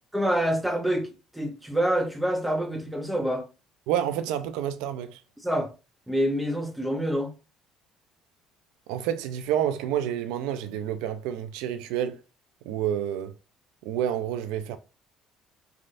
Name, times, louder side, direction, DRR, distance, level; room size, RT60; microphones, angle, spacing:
voice 1, 0.1-3.5 5.4-5.7 6.1-7.3, equal, 5° right, 0.7 m, -26 dB
voice 2, 3.9-5.2 8.9-12.2 12.7-13.3 13.8-14.8, right 10 dB, 85° right, 0.4 m, -29 dB
3.4 x 2.4 x 2.5 m
cardioid pair, 95°, 0 cm